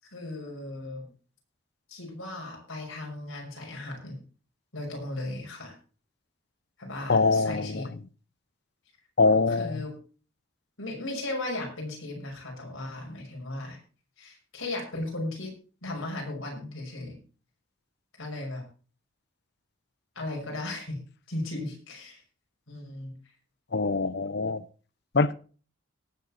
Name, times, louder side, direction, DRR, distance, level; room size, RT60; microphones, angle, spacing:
voice 1, 0.0-1.1 1.9-4.2 4.7-5.7 6.8-7.9 9.5-9.9 10.8-13.8 14.2-15.5 15.8-17.2 18.2-18.7 20.2-21.0 21.3-22.2 22.7-23.1, left 2 dB, 80° left, 5.8 m, -36 dB
voice 2, 7.1-7.8 9.2-9.8 23.7-24.6 25.1-25.3, left 3 dB, 55° left, 0.7 m, -23 dB
18.5 x 7.5 x 4.3 m
head